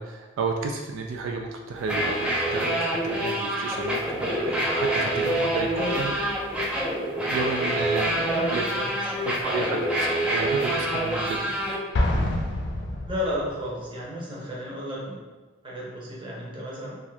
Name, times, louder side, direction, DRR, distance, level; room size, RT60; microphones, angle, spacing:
voice 1, 0.0-6.1 7.3-8.6 9.2-11.4, right 3 dB, 85° right, 3 dB, 0.3 m, -32 dB
sound 1, 1.8-11.8, right 1 dB, 5° right, 0.4 m, -26 dB
voice 2, 5.7-6.1 8.1-9.5 13.1-15.2 15.6-17.0, left 1 dB, 25° right, -5 dB, 0.7 m, -33 dB
Explosion, 11.9-13.7, left 1 dB, 65° left, 0.5 m, -26 dB
2.6 x 2.4 x 3.2 m, 1.3 s
head